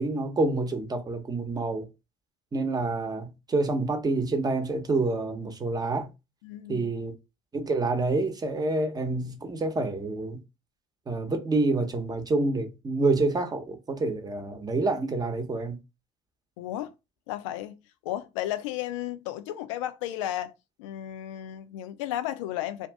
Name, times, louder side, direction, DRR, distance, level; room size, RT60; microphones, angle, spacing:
voice 1, 0.0-1.9 2.5-6.1 6.7-7.1 7.5-10.4 11.1-15.8, right 3 dB, 25° right, 0.8 m, -27 dB
voice 2, 6.4-6.9 16.6-16.9 17.3-17.8 18.0-20.5 20.8-22.9, left 13 dB, 75° left, 0.4 m, -33 dB
2.6 x 2.5 x 3.3 m
hypercardioid pair, 65°, 16 cm